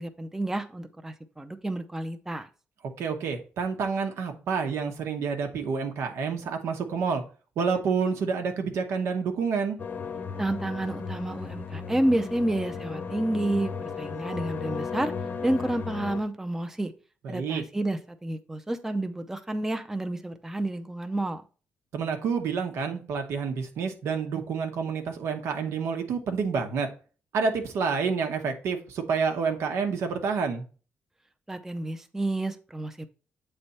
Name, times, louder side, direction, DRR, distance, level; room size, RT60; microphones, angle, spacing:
voice 1, 0.0-2.5 10.4-15.1 15.4-16.9 17.3-21.4 31.5-33.1, right 1 dB, 10° right, 7 dB, 0.5 m, -30 dB
voice 2, 3.0-7.2 7.6-9.8 17.2-17.6 21.9-26.9 27.3-30.6, right 5 dB, 90° right, 5 dB, 1.0 m, -28 dB
sound 1, 9.8-16.2, left 5 dB, 45° left, 0.8 m, -35 dB
8.0 x 3.3 x 4.1 m, 0.37 s
cardioid pair, 125°, 4 cm